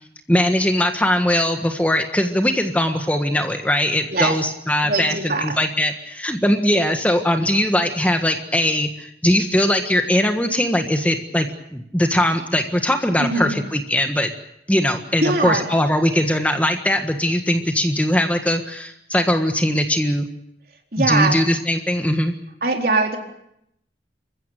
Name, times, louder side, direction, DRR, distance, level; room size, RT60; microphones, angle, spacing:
voice 1, 0.3-14.3 14.7-20.3 21.0-22.3, left 1 dB, 10° left, 5 dB, 1.5 m, -20 dB
voice 2, 4.8-5.5 13.2-13.5 15.2-15.7 20.9-21.4 22.6-23.2, right 3 dB, 55° right, 2 dB, 4.1 m, -21 dB
28.5 x 15.5 x 8.9 m, 0.76 s
head